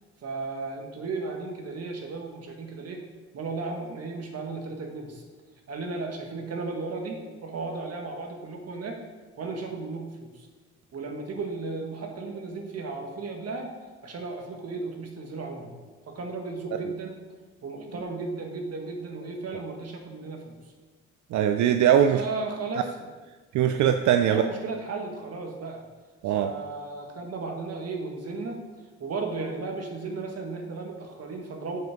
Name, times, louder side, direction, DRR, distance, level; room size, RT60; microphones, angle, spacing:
voice 1, 0.2-3.0 3.3-5.2 5.7-9.0 9.4-10.5 10.9-13.7 14.0-15.8 16.1-17.2 17.6-20.5 22.1-22.9 24.3-25.8 26.3-28.6 29.0-31.8, right 3 dB, 55° right, 2 dB, 1.7 m, -35 dB
voice 2, 21.3-22.2 23.5-24.4 26.2-26.5, right 9 dB, 75° right, 8 dB, 0.5 m, -21 dB
7.6 x 5.9 x 5.3 m, 1.3 s
cardioid pair, 90°, 30 cm